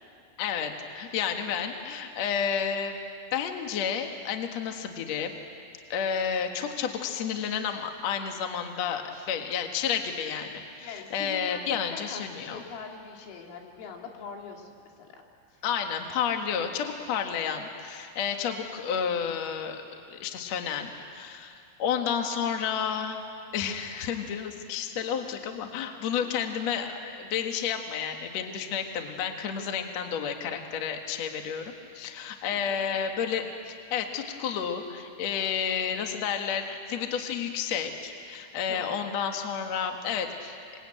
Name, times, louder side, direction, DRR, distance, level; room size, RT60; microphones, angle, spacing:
voice 1, 0.4-3.0 3.3-5.3 5.9-12.6 15.6-19.8 20.1-21.5 21.8-23.2 23.5-40.6, left 7 dB, 65° left, 4 dB, 1.6 m, -31 dB
voice 2, 9.1-9.4 10.8-14.7 15.0-15.1 15.5-15.6 25.9-26.3 32.5-32.9 38.7-39.0, left 5 dB, 85° left, 1 dB, 5.2 m, -43 dB
27.0 x 22.5 x 9.0 m, 2.4 s
omnidirectional pair, 5.9 m